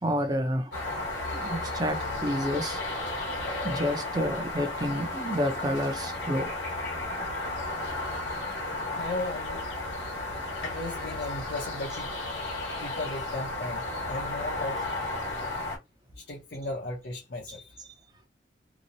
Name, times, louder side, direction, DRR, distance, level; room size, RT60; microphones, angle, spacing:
voice 1, 0.0-0.7 1.3-2.8 3.6-6.5 17.8-17.9, equal, 20° right, 0.5 m, -29 dB
sound 1, 0.7-15.8, left 2 dB, 75° left, 1.2 m, -33 dB
voice 2, 8.9-9.7 10.4-12.1 12.8-13.8 14.1-14.8 16.2-17.8, left 2 dB, 60° left, 0.6 m, -36 dB
2.9 x 2.0 x 2.6 m
head